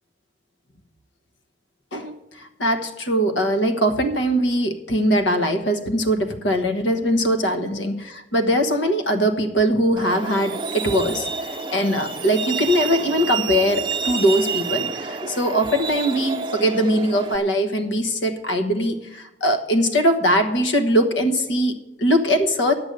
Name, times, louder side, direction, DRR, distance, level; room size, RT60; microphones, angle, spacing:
voice 1, 1.9-22.7, equal, 90° left, 7 dB, 1.2 m, -21 dB
Truck, 10.0-17.4, right 5 dB, 25° right, 0.5 m, -29 dB
10.0 x 8.0 x 6.7 m, 0.95 s
head